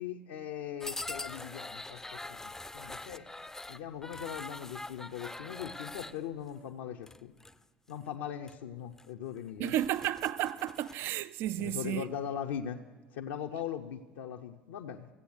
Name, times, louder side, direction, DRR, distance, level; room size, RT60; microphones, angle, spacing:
voice 1, 0.0-3.3 3.7-7.3 7.9-9.7 11.6-12.8 13.1-15.1, left 9 dB, 70° left, 0.6 m, -40 dB
sound 1, 0.8-6.2 7.0-7.5 7.9-8.1 8.5-8.6 9.0-9.1 9.5-11.1, left 2 dB, 10° left, 0.5 m, -43 dB
voice 2, 9.6-12.1, right 13 dB, 50° right, 0.4 m, -32 dB
15.0 x 8.3 x 8.0 m
figure-of-eight pair, 70°, 5 cm